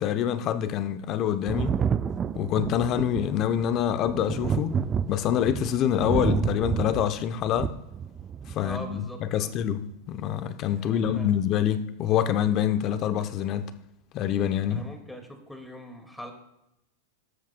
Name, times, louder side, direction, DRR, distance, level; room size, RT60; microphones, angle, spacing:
voice 1, 0.0-1.7 2.3-4.8 5.1-7.7 8.5-13.7 14.1-14.8, left 10 dB, 40° left, 0.7 m, -26 dB
Thunder, 1.5-8.8 9.9-10.0, right 7 dB, 25° right, 0.4 m, -30 dB
voice 2, 8.6-9.5 10.7-11.3 14.7-16.3, equal, 5° left, 2.0 m, -42 dB
19.0 x 7.3 x 2.2 m
hypercardioid pair, 105°, 0 cm